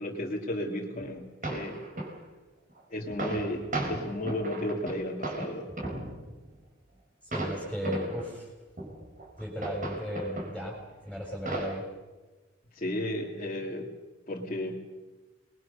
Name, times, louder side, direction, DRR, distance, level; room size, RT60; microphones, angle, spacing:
voice 1, 0.0-1.8 2.9-5.7 12.7-13.9 14.3-14.9, left 1 dB, 35° left, -4 dB, 2.5 m, -34 dB
sound 1, 1.0-1.1 1.4-2.2 2.7-2.8 3.1-6.5 7.3-8.3 8.8-10.7 11.2-11.8, right 2 dB, 40° right, 5.1 m, -36 dB
voice 2, 7.2-8.5 9.4-10.8 11.0-11.9, equal, 5° right, -3 dB, 5.8 m, -35 dB
27.0 x 21.5 x 6.8 m, 1.2 s
head